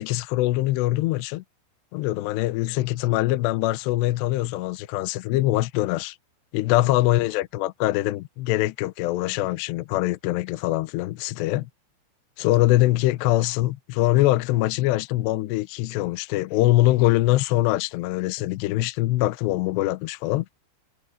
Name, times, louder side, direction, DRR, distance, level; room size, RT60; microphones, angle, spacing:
voice 1, 0.0-1.4 1.9-6.2 6.5-11.7 12.4-20.5, left 17 dB, 85° left, 2.5 m, -23 dB
omnidirectional pair, 5.9 m